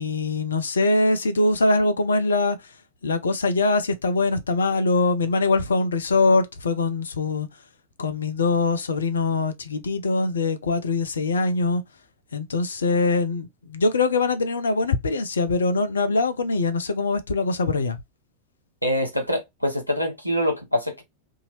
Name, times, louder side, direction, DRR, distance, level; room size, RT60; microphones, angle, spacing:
voice 1, 0.0-2.6 3.0-7.5 8.0-11.8 12.3-18.0, left 3 dB, 70° left, 0.6 m, -23 dB
voice 2, 18.8-21.0, equal, 90° right, 0.9 m, -25 dB
2.8 x 2.7 x 2.8 m
figure-of-eight pair, 90°, 0 cm